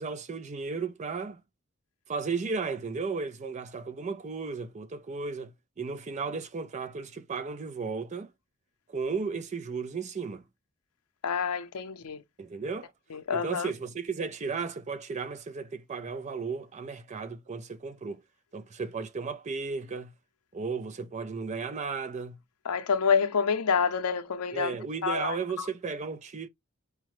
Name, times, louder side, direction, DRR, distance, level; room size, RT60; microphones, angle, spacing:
voice 1, 0.0-1.4 2.1-8.3 8.9-10.4 12.4-12.9 13.3-18.2 18.5-20.1 20.5-22.4 24.5-26.5, right 5 dB, 30° right, 0.4 m, -34 dB
voice 2, 11.2-12.2 13.1-13.7 22.6-24.7 25.0-25.7, left 6 dB, 80° left, 0.6 m, -28 dB
4.7 x 2.1 x 3.0 m
head